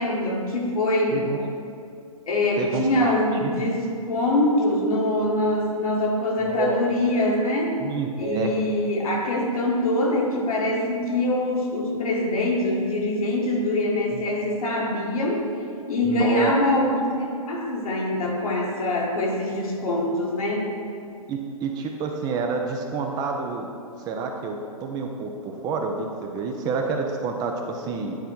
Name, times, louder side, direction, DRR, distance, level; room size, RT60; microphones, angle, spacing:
voice 1, 0.0-1.2 2.3-7.7 8.2-15.4 15.9-20.7, left 1 dB, 70° left, -2 dB, 1.8 m, -24 dB
voice 2, 2.6-3.1 3.4-3.7 6.4-6.8 7.8-8.5 14.1-14.2 16.0-16.6 21.3-23.7 24.0-28.2, right 5 dB, 20° right, 3 dB, 0.5 m, -28 dB
9.6 x 4.4 x 4.4 m, 2.5 s
hypercardioid pair, 125°, 19 cm